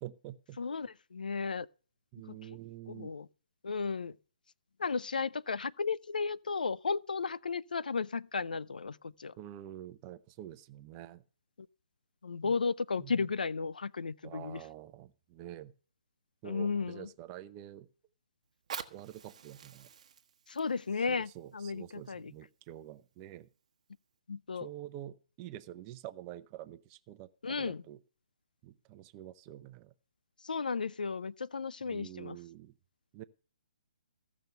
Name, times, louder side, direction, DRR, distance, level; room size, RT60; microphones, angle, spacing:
voice 1, 0.0-0.6 2.1-3.1 9.4-11.2 12.4-12.5 13.0-13.3 14.2-15.7 16.4-17.9 18.9-19.9 21.0-23.5 24.6-28.0 28.6-29.9 31.8-32.7 33.1-33.2, right 13 dB, 25° right, 0.6 m, -47 dB
voice 2, 0.6-1.7 2.3-2.4 2.9-3.3 3.6-4.1 4.8-9.3 12.2-14.6 16.4-17.1 20.5-22.3 24.3-24.7 27.4-27.8 30.4-32.4, left 5 dB, 85° left, 0.4 m, -34 dB
Fire, 18.4-23.4 24.0-24.1, right 7 dB, 50° right, 1.0 m, -48 dB
15.0 x 6.1 x 6.8 m
hypercardioid pair, 145°, 4 cm